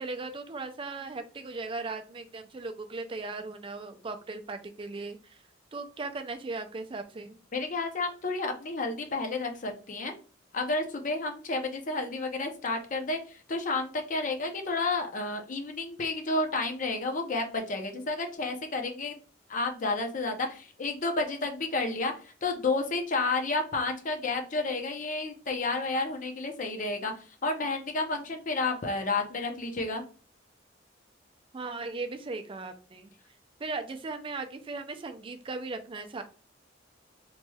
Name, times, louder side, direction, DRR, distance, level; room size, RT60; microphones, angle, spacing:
voice 1, 0.0-5.4 5.7-7.4 31.5-33.1 33.6-36.2, right 3 dB, 25° right, 7 dB, 0.4 m, -37 dB
voice 2, 7.5-10.1 10.5-19.2 19.5-27.1 27.4-30.0, left 3 dB, 40° left, 4 dB, 0.6 m, -31 dB
3.1 x 3.0 x 2.2 m, 0.37 s
head